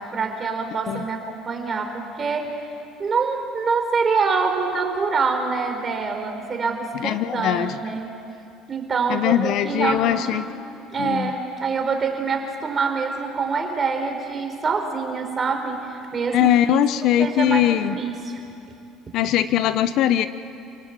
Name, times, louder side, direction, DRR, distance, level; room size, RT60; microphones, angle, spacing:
voice 1, 0.0-2.6 3.0-8.1 8.7-10.5 10.9-16.5 17.2-18.5, right 4 dB, 35° right, 4 dB, 4.0 m, -25 dB
voice 2, 7.0-7.7 9.1-10.5 11.0-11.3 16.3-18.0 19.1-20.3, left 11 dB, 65° left, 13 dB, 0.9 m, -20 dB
27.5 x 18.5 x 9.1 m, 2.7 s
supercardioid pair, 95°, 0 cm